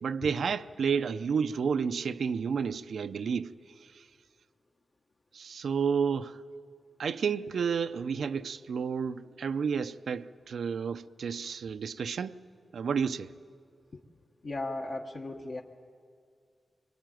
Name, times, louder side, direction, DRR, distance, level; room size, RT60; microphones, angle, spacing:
voice 1, 0.0-3.5 3.9-4.0 5.3-6.4 7.0-12.3 12.7-13.3, right 6 dB, 85° right, 0.6 m, -31 dB
voice 2, 14.4-15.6, left 2 dB, 55° left, 1.3 m, -36 dB
24.5 x 22.5 x 9.2 m
wide cardioid pair, 120°, 0 cm